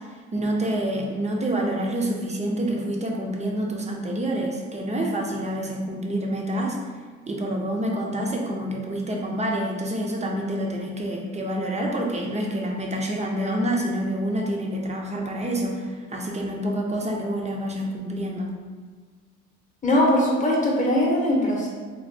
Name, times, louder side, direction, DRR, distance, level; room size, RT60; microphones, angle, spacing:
voice 1, 0.3-6.8 7.3-18.5, right 1 dB, 25° right, 0 dB, 0.5 m, -27 dB
voice 2, 19.8-21.7, left 1 dB, 25° left, -3 dB, 0.8 m, -21 dB
3.2 x 2.2 x 2.6 m, 1.5 s
cardioid pair, 90°, 30 cm